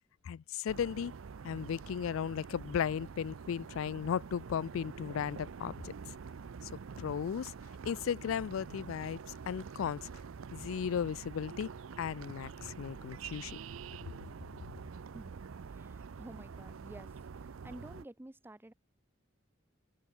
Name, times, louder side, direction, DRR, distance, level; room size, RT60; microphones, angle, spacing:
voice 1, 0.2-1.1 1.4-5.9 7.0-7.5 7.8-9.2 9.5-10.1 10.5-11.7 12.0-13.6, left 8 dB, 80° left, 0.3 m, -35 dB
sound 1, 0.7-18.0, right 5 dB, 85° right, 0.5 m, -46 dB
voice 2, 15.7-17.2 17.6-18.7, right 1 dB, 10° right, 0.5 m, -50 dB
open air
head